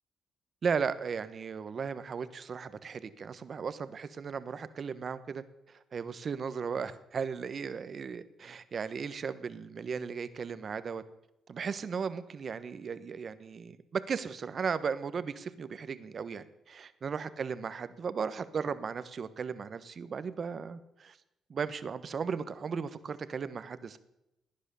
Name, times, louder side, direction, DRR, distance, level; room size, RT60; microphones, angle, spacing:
voice 1, 0.6-5.4 5.9-11.0 11.5-21.2 21.5-24.0, right 6 dB, 45° right, 13 dB, 1.1 m, -36 dB
17.0 x 10.0 x 6.9 m, 0.86 s
cardioid pair, 90°, 0 cm